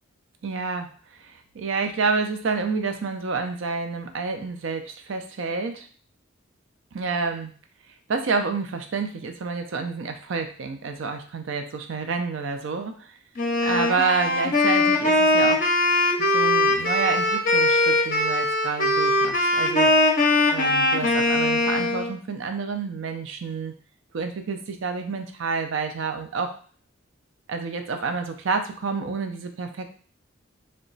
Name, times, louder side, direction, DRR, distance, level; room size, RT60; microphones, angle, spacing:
voice 1, 0.4-0.9 1.2-5.9 6.9-7.5 8.1-13.1 13.6-15.6 16.2-19.9 20.5-23.7 24.1-26.6 27.5-29.9, right 4 dB, 65° right, 6 dB, 0.4 m, -29 dB
Wind instrument woodwind instrument, 13.4-22.1, left 2 dB, 40° left, 0.5 m, -21 dB
2.9 x 2.2 x 3.9 m, 0.43 s
head